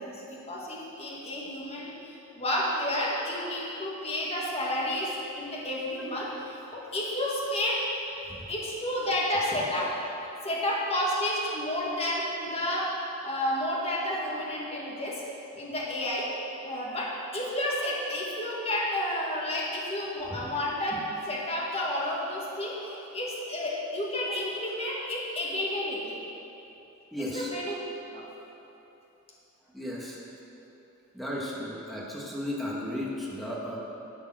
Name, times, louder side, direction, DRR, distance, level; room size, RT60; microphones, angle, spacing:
voice 1, 0.0-7.8 8.5-9.9 10.4-12.9 13.2-15.2 15.5-16.3 16.6-20.9 21.3-26.2 27.2-27.8 28.1-28.2, left 1 dB, 30° left, -4 dB, 1.9 m, -31 dB
voice 2, 27.1-27.5 29.7-30.2 31.1-33.8, left 1 dB, ahead, -5 dB, 1.8 m, -35 dB
12.5 x 7.1 x 6.3 m, 3.0 s
head